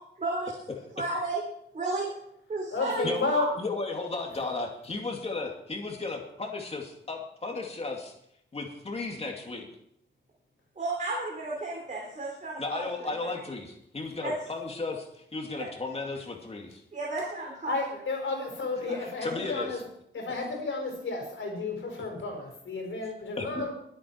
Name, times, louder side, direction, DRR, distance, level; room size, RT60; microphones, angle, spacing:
voice 1, 0.2-0.5 1.0-1.4 1.7-2.1 2.5-3.5 10.8-13.1 14.2-14.3 15.6-15.7 16.9-17.8 18.9-19.0, right 2 dB, 40° right, -3 dB, 3.6 m, -33 dB
voice 2, 2.7-3.5 17.7-19.8 20.1-23.7, left 3 dB, 85° left, 2 dB, 4.8 m, -32 dB
voice 3, 3.6-8.1 8.5-9.7 12.6-16.8 18.8-19.7 23.4-23.6, left 3 dB, 30° left, 1 dB, 2.5 m, -35 dB
22.5 x 8.5 x 4.7 m, 0.74 s
wide cardioid pair, 175°, 20 cm